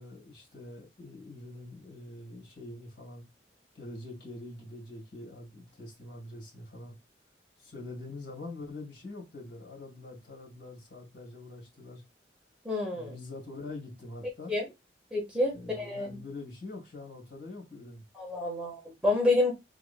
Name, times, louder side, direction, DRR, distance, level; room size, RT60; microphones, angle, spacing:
voice 1, 0.0-3.2 3.7-7.0 7.6-12.0 12.9-14.5 15.5-18.0, left 2 dB, 65° left, 2.3 m, -44 dB
voice 2, 12.6-13.1 14.5-14.6 15.1-16.1 18.1-19.5, left 2 dB, 5° right, 1.4 m, -28 dB
4.6 x 3.8 x 2.2 m
head